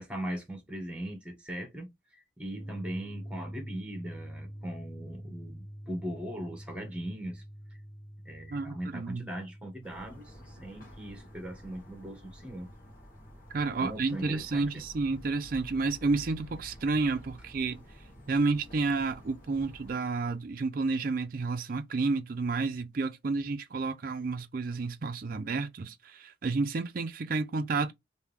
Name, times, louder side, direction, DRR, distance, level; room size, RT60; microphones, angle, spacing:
voice 1, 0.0-7.4 8.2-12.7 13.8-14.8, right 1 dB, 5° right, 1.1 m, -40 dB
sound 1, 2.5-15.4, equal, 70° left, 1.0 m, -47 dB
voice 2, 8.5-9.2 13.5-17.8 18.3-27.9, right 3 dB, 45° right, 0.4 m, -30 dB
sound 2, 9.8-19.9, equal, 45° left, 1.3 m, -51 dB
3.4 x 2.7 x 3.3 m
head